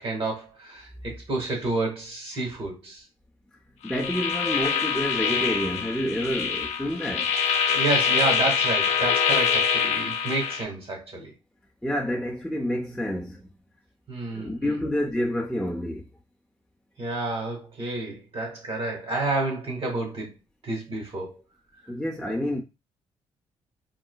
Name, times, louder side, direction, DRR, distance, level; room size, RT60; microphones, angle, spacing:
voice 1, 0.0-3.0 7.7-11.3 14.1-14.8 17.0-20.3 20.6-21.3, right 2 dB, 50° right, 1.9 m, -30 dB
voice 2, 3.8-7.3 11.8-13.5 14.3-16.1 21.9-22.6, equal, 5° left, 0.6 m, -28 dB
sound 1, 3.9-10.6, left 7 dB, 70° left, 0.5 m, -25 dB
3.9 x 2.2 x 2.2 m
supercardioid pair, 55°, 12 cm